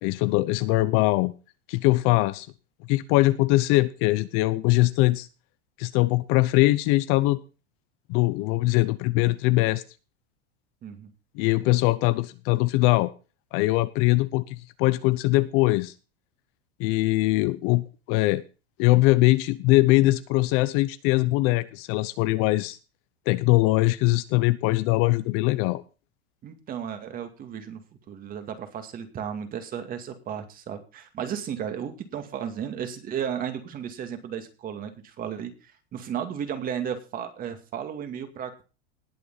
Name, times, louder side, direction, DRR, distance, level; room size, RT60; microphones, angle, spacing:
voice 1, 0.0-1.3 1.7-2.5 2.9-5.3 5.8-7.4 8.1-9.8 11.4-13.1 13.5-15.9 16.8-18.4 18.8-22.8 23.3-25.8, left 19 dB, 40° left, 0.7 m, -22 dB
voice 2, 10.8-11.1 26.4-38.7, right 8 dB, 25° right, 2.2 m, -34 dB
19.5 x 6.9 x 4.0 m
supercardioid pair, 155°, 32 cm